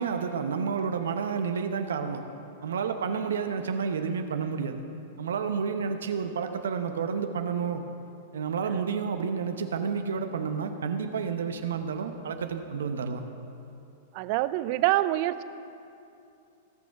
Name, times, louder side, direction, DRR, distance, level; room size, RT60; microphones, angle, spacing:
voice 1, 0.0-2.2 2.6-4.8 5.2-7.8 8.3-13.2, right 6 dB, 80° right, 7 dB, 0.8 m, -30 dB
voice 2, 14.1-15.4, right 16 dB, 50° right, 14 dB, 0.5 m, -26 dB
16.5 x 6.3 x 5.8 m, 2.6 s
hypercardioid pair, 110°, 0 cm